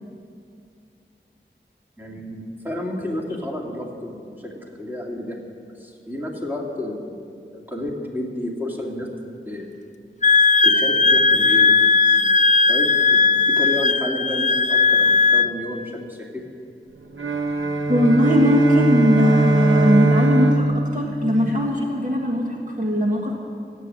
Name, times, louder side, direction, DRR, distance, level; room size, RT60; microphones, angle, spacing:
voice 1, 2.0-5.4 5.8-9.1 9.5-9.7 10.6-11.8 12.2-12.4 12.7-16.4, left 1 dB, 10° right, -2 dB, 2.5 m, -31 dB
Wind instrument woodwind instrument, 10.2-15.5, left 4 dB, 40° left, 0.4 m, -17 dB
sound 1, 17.1-21.8, right 1 dB, 90° right, 1.0 m, -21 dB
voice 2, 17.9-23.3, equal, 40° right, -2 dB, 1.5 m, -19 dB
14.5 x 7.8 x 9.8 m, 2.4 s
wide cardioid pair, 40°, 20 cm